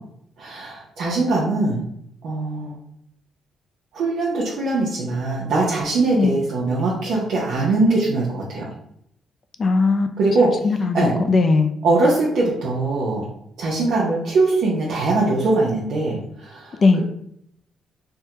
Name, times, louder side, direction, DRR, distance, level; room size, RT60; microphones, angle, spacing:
voice 1, 0.4-1.8 2.2-2.8 3.9-8.7 10.2-10.6 10.9-11.1 11.8-13.2 13.6-17.0, right 2 dB, 75° right, -5 dB, 0.6 m, -21 dB
voice 2, 9.6-10.1 10.6-11.7 16.8-17.0, left 3 dB, 45° left, 9 dB, 0.3 m, -18 dB
3.5 x 2.2 x 2.8 m, 0.73 s
cardioid pair, 90°, 0 cm